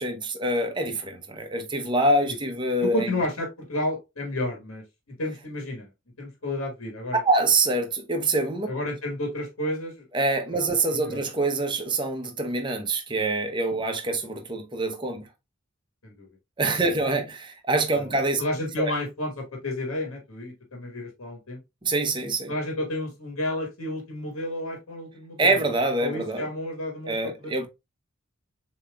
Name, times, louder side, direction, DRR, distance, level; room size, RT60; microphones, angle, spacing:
voice 1, 0.0-3.2 7.2-8.7 10.1-15.3 16.6-18.4 18.8-18.9 21.8-22.5 25.4-26.5 27.1-27.7, right 2 dB, 25° right, 0.7 m, -25 dB
voice 2, 2.8-5.9 6.2-7.2 8.7-10.1 10.9-11.2 16.0-16.3 16.7-16.9 17.9-18.1 18.4-21.6 22.5-25.6 26.0-27.5, left 1 dB, 85° left, 1.4 m, -31 dB
7.1 x 2.9 x 2.3 m
head